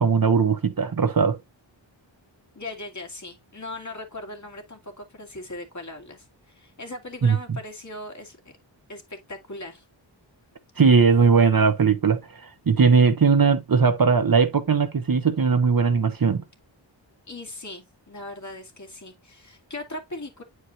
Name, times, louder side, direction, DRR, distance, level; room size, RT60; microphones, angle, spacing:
voice 1, 0.0-1.4 7.2-7.4 10.8-16.4, right 5 dB, 50° right, 1.0 m, -19 dB
voice 2, 2.5-8.4 8.9-9.8 17.3-20.4, left 2 dB, 40° left, 2.4 m, -39 dB
9.6 x 4.7 x 2.7 m
wide cardioid pair, 75°, 46 cm